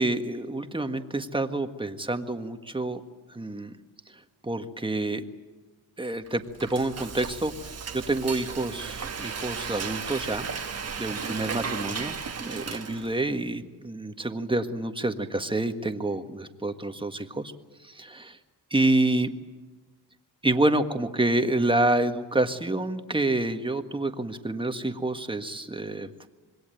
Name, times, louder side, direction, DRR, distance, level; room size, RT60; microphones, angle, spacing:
voice 1, 0.0-3.0 3.3-3.7 4.4-5.2 6.0-7.5 7.9-10.5 11.0-17.5 17.8-18.4 18.7-19.3 20.4-26.3, right 2 dB, 15° right, 7 dB, 1.6 m, -28 dB
Frying (food), 6.3-13.3, right 6 dB, 40° right, 1.5 m, -35 dB
26.0 x 22.0 x 9.2 m, 1.2 s
cardioid pair, 115°, 39 cm